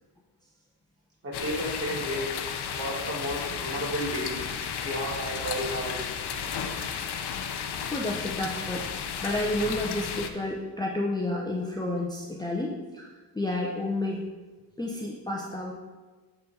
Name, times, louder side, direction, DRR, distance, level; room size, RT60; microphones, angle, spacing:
voice 1, 1.2-4.4 4.8-6.1 7.3-7.5 7.8-7.9, equal, 35° right, -3 dB, 1.9 m, -33 dB
sound 1, 1.3-10.3, left 7 dB, 65° left, 0.7 m, -33 dB
voice 2, 7.5-8.9 9.2-14.3 14.8-15.7, left 1 dB, 10° left, -3 dB, 0.7 m, -31 dB
8.2 x 4.0 x 4.1 m, 1.3 s
cardioid pair, 100°, 43 cm